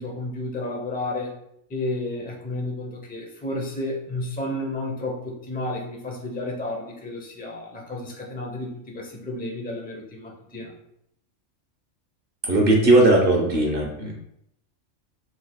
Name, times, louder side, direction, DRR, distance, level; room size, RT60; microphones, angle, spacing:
voice 1, 0.0-1.3 1.7-8.7 8.9-10.7, left 2 dB, 10° left, 0 dB, 0.5 m, -31 dB
voice 2, 12.4-14.1, right 2 dB, 50° right, 0 dB, 1.0 m, -18 dB
4.8 x 4.2 x 2.2 m, 0.76 s
omnidirectional pair, 1.4 m